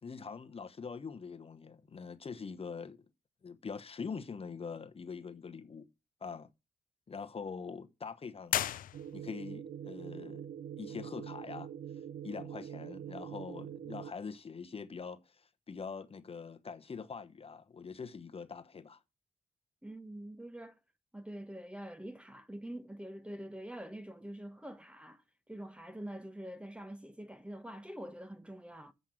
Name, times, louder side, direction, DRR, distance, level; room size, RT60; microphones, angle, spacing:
voice 1, 0.0-3.0 3.4-5.9 6.2-6.5 7.1-8.6 9.1-10.5 10.8-11.7 12.2-19.0, left 5 dB, 45° left, 0.9 m, -44 dB
sound 1, 8.4-9.5, left 11 dB, 85° left, 0.5 m, -35 dB
sound 2, 8.9-14.1, right 9 dB, 80° right, 0.5 m, -44 dB
voice 2, 19.8-20.8 21.1-25.2 25.5-28.9, right 1 dB, 10° right, 1.0 m, -45 dB
7.5 x 5.3 x 7.4 m
cardioid pair, 65°, 14 cm